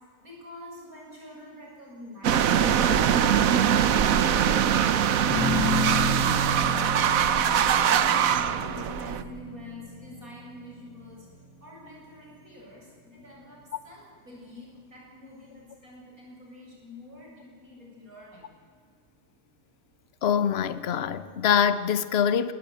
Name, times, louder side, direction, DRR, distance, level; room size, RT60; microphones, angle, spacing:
voice 1, 0.2-4.9 5.3-11.3 11.6-18.5, left 1 dB, 40° right, 8.1 m, -46 dB
sound 1, 2.2-9.2, right 9 dB, 60° right, 0.9 m, -22 dB
sound 2, 5.3-11.8, equal, 10° left, 6.6 m, -31 dB
voice 2, 20.2-22.5, left 8 dB, 55° left, 0.7 m, -24 dB
21.0 x 19.0 x 9.3 m
omnidirectional pair, 2.3 m